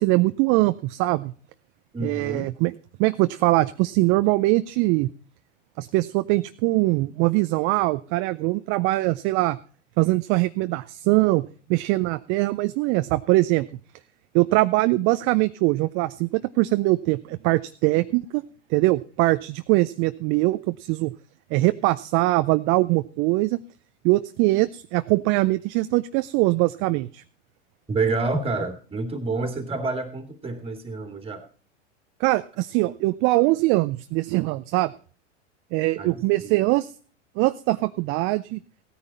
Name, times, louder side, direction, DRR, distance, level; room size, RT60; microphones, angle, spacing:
voice 1, 0.0-1.3 2.0-2.7 3.0-5.1 5.8-9.6 10.0-13.7 14.3-18.4 18.7-21.1 21.5-23.6 24.0-27.2 32.2-34.9 35.7-36.9 37.4-38.6, right 20 dB, 35° right, 12 dB, 0.5 m, -22 dB
voice 2, 1.9-2.5 27.9-31.4 36.0-36.7, right 3 dB, 15° right, 7 dB, 2.4 m, -28 dB
16.5 x 9.7 x 4.1 m, 0.40 s
hypercardioid pair, 100°, 37 cm